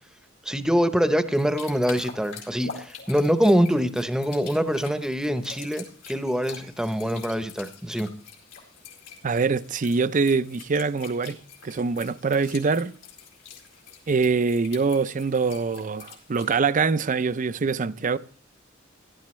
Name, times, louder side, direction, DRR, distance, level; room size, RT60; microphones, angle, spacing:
voice 1, 0.4-8.1, equal, 5° right, 0.8 m, -24 dB
sound 1, 1.3-16.6, left 6 dB, 90° left, 4.1 m, -45 dB
voice 2, 9.2-11.4 11.6-12.9 14.1-18.2, right 4 dB, 40° right, 0.5 m, -24 dB
17.5 x 11.5 x 3.2 m
head